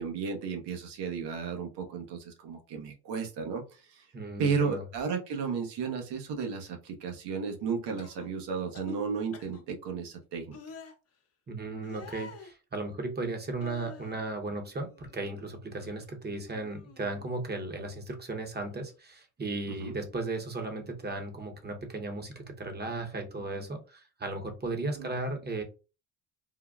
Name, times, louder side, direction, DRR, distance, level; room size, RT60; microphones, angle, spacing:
voice 1, 0.0-4.0 4.4-10.6 19.8-20.0 25.0-25.1, right 5 dB, 70° right, 4 dB, 1.0 m, -33 dB
voice 2, 4.1-4.8 11.5-25.6, right 2 dB, 25° right, 5 dB, 0.9 m, -36 dB
sound 1, 8.0-8.3 8.7-9.0 9.3-9.6 10.5-10.9 11.8-12.5 13.6-14.2 14.7-15.5 15.8-16.1 16.5-17.3 18.5-18.7, left 4 dB, 35° left, 0.8 m, -48 dB
3.8 x 2.2 x 2.4 m, 0.32 s
supercardioid pair, 75°, 43 cm